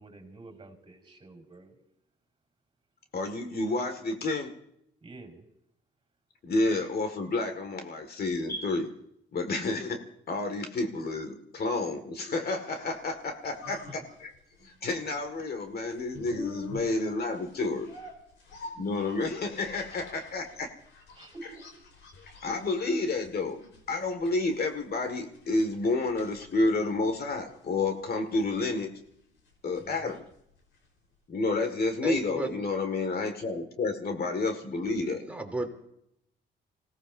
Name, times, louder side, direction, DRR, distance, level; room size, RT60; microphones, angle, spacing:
voice 1, 0.0-1.8 5.0-5.4 13.9-14.0 21.1-21.7 29.8-30.1, right 3 dB, 25° right, 2 dB, 4.8 m, -48 dB
voice 2, 3.1-4.5 6.4-8.9 9.3-14.3 14.6-17.9 18.7-20.7 22.4-23.6 23.9-28.9 29.6-30.3 31.3-35.2, left 3 dB, 50° left, 6 dB, 2.0 m, -30 dB
sound 1, 13.0-31.1 31.3-31.4, left 4 dB, 75° left, 4.1 m, -48 dB
voice 3, 32.0-32.5 35.2-35.7, right 2 dB, 5° right, 1 dB, 3.1 m, -32 dB
27.0 x 17.5 x 2.7 m, 0.75 s
cardioid pair, 90°, 20 cm